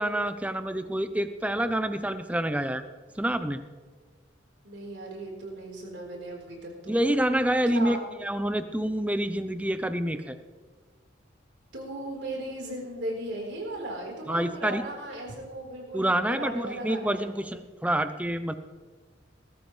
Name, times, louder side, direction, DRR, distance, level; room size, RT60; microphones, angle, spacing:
voice 1, 0.0-2.8 3.2-3.6 6.9-10.4 14.3-14.8 15.9-18.5, right 1 dB, 5° right, 10 dB, 0.6 m, -27 dB
voice 2, 4.6-7.0 7.7-8.0 11.7-17.3, right 1 dB, 70° right, -1 dB, 4.2 m, -37 dB
20.5 x 13.0 x 3.3 m, 1.4 s
head